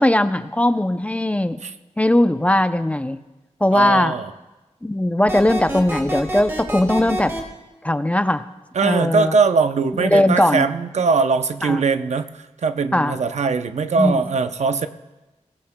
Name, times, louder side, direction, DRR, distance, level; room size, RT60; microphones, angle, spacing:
voice 1, 0.0-1.6 2.0-3.2 3.6-4.2 4.8-7.3 7.8-8.4 8.8-9.3 10.0-10.7 11.6-11.8 12.9-13.2 14.0-14.2, left 1 dB, 10° left, 10 dB, 0.5 m, -19 dB
voice 2, 3.7-4.3 8.7-12.3 12.6-14.9, right 4 dB, 70° right, 9 dB, 0.6 m, -20 dB
sound 1, 5.3-7.4, equal, 20° right, 2.2 m, -27 dB
22.0 x 17.0 x 2.2 m, 1.1 s
wide cardioid pair, 130°, 12 cm